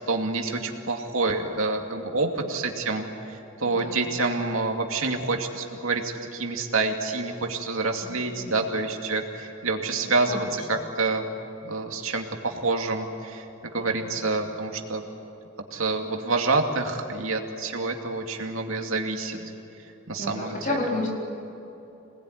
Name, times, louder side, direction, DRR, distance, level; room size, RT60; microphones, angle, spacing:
voice 1, 0.0-11.3 11.6-15.0 15.7-19.4 20.1-20.8, right 3 dB, 80° right, 3 dB, 2.6 m, -27 dB
voice 2, 3.7-4.1 8.0-8.6 10.0-10.8 13.7-14.3 19.4-19.5 20.2-21.1, left 2 dB, 35° left, -2 dB, 4.4 m, -33 dB
26.5 x 20.0 x 9.7 m, 3.0 s
head